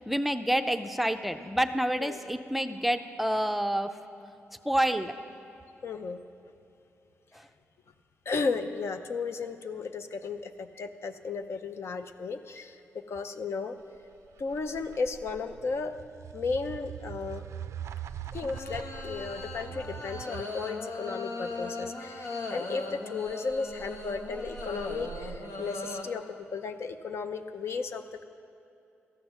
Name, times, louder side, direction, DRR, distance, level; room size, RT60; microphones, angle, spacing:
voice 1, 0.0-3.9 4.6-5.1 7.3-7.5, right 1 dB, 5° right, 8 dB, 0.5 m, -28 dB
voice 2, 5.8-6.2 8.3-13.8 14.4-17.5 18.3-28.2, left 4 dB, 65° left, 8 dB, 0.6 m, -34 dB
sound 1, 11.6-11.7 18.4-26.0, left 2 dB, 85° left, 1.1 m, -39 dB
sound 2, 14.0-20.7 23.3-25.4, right 9 dB, 80° right, 0.3 m, -42 dB
13.5 x 5.9 x 8.1 m, 2.8 s
cardioid pair, 80°, 5 cm